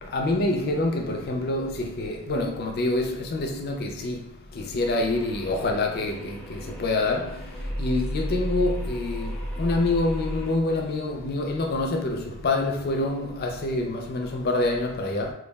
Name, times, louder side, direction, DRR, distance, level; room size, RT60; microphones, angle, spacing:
voice 1, 0.0-15.3, left 2 dB, 45° left, 0.4 m, -27 dB
sound 1, 4.8-10.5, equal, 5° left, 0.6 m, -33 dB
2.3 x 2.1 x 3.3 m
head